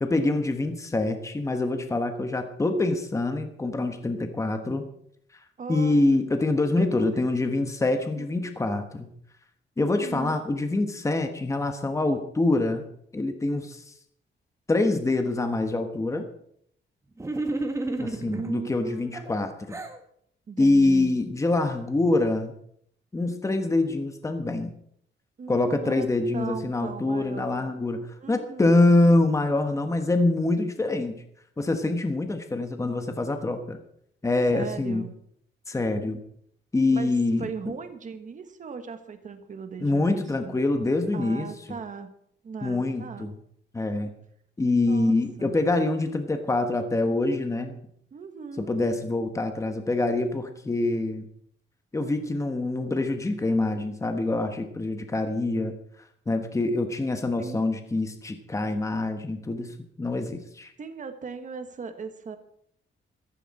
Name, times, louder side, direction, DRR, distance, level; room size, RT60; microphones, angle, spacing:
voice 1, 0.0-4.8 5.7-9.1 9.8-12.8 13.1-13.9 14.7-16.3 18.0-19.8 20.6-22.5 23.1-24.7 25.5-28.0 28.3-31.2 31.6-33.8 34.2-35.0 35.7-36.2 36.7-37.5 39.8-41.5 42.6-43.3 43.7-44.1 44.6-47.8 48.6-51.3 51.9-55.7 56.3-59.7 60.0-60.7, left 2 dB, 15° left, 6 dB, 1.2 m, -25 dB
voice 2, 5.6-6.0 6.8-7.3 8.2-8.5 9.8-10.4 18.3-19.2 20.5-21.1 25.4-26.1 26.3-27.7 28.2-28.8 34.5-35.1 36.9-40.6 41.1-42.2 42.4-43.3 44.8-45.1 45.4-45.6 48.1-48.8 57.4-57.6 60.8-62.4, right 5 dB, 40° right, 8 dB, 1.5 m, -38 dB
sound 1, 17.2-18.5 19.1-20.0, right 2 dB, 15° right, 1.4 m, -31 dB
15.0 x 14.5 x 4.2 m, 0.68 s
wide cardioid pair, 180°, 20 cm